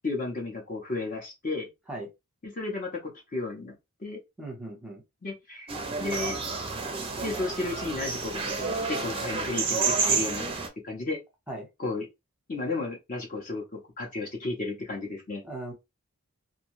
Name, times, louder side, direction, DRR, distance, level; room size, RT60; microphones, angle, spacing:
voice 1, 0.0-1.7 2.4-3.7 4.0-4.2 5.2-5.7 6.0-6.4 7.2-10.5 10.8-11.2 11.8-12.1 12.5-13.6 14.0-15.4, left 3 dB, 40° left, 0.7 m, -33 dB
voice 2, 4.4-5.0 11.5-11.7 15.4-15.7, right 2 dB, 5° right, 0.9 m, -38 dB
sound 1, 5.7-10.7, right 4 dB, 25° right, 0.5 m, -30 dB
2.6 x 2.2 x 3.0 m
head